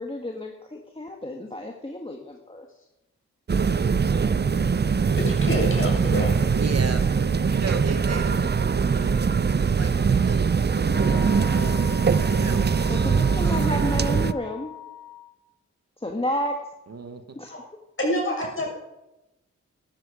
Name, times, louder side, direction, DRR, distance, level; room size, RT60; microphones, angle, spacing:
voice 1, 0.0-2.7 12.9-14.7 16.0-16.7 17.3-17.5, left 1 dB, 20° left, 2 dB, 1.7 m, -31 dB
sound 1, 3.5-14.3, right 5 dB, 35° right, 0.6 m, -22 dB
voice 2, 5.1-6.4 17.5-17.6 18.0-18.7, equal, 40° left, -2 dB, 6.6 m, -27 dB
voice 3, 6.5-12.6 13.4-13.8 14.1-14.5 16.9-17.4, right 4 dB, 55° right, 8 dB, 1.5 m, -37 dB
Wind instrument woodwind instrument, 10.9-15.3, left 13 dB, 85° left, 4.6 m, -41 dB
13.5 x 12.5 x 5.1 m, 0.98 s
cardioid pair, 50°, 31 cm